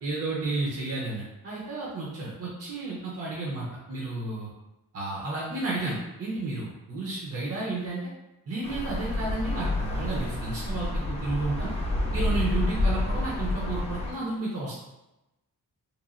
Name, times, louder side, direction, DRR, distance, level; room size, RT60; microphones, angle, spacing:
voice 1, 0.0-4.5 4.9-8.1 8.5-11.8 12.1-14.7, right 2 dB, 40° right, -5 dB, 0.6 m, -32 dB
sound 1, 8.6-14.1, left 1 dB, 20° left, 0.5 m, -29 dB
3.0 x 2.3 x 2.4 m, 0.97 s
wide cardioid pair, 100°, 36 cm